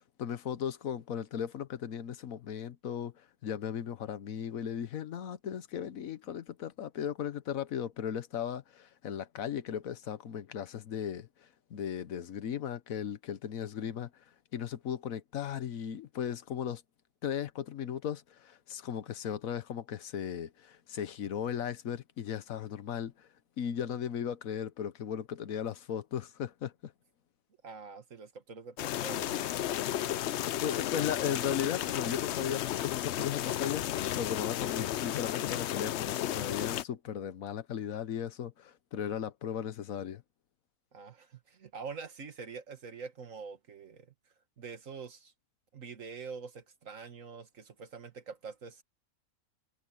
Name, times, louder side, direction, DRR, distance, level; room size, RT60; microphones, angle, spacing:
voice 1, 0.0-3.1 3.4-11.3 11.7-14.2 14.5-16.8 17.2-23.3 23.6-26.9 30.6-40.2, left 9 dB, 90° left, 1.4 m, -36 dB
voice 2, 27.6-29.5 40.9-44.1 44.6-45.3 45.7-48.8, right 5 dB, 70° right, 2.1 m, -45 dB
sound 1, 28.8-36.8, left 12 dB, 65° left, 0.8 m, -33 dB
omnidirectional pair, 1.4 m